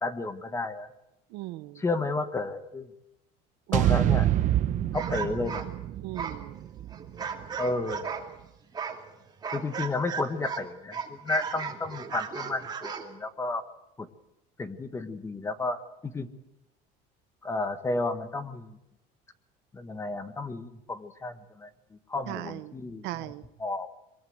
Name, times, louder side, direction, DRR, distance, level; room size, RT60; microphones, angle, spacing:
voice 1, 0.0-0.9 1.8-2.9 3.7-4.3 4.9-5.6 7.6-8.1 9.5-13.6 14.6-15.8 16.0-16.3 17.4-18.7 19.7-21.7 22.1-23.0 23.6-23.9, left 3 dB, 15° left, 10 dB, 1.4 m, -32 dB
voice 2, 1.3-1.8 3.8-4.0 6.0-6.6 22.3-22.7 23.0-23.4, right 17 dB, 70° right, 11 dB, 0.9 m, -38 dB
sound 1, 3.7-7.9, right 12 dB, 45° right, 1.0 m, -27 dB
sound 2, 4.9-8.3 8.7-10.6 10.9-13.1, right 6 dB, 25° right, 2.4 m, -36 dB
23.0 x 22.5 x 7.9 m, 0.87 s
cardioid pair, 160°, 18 cm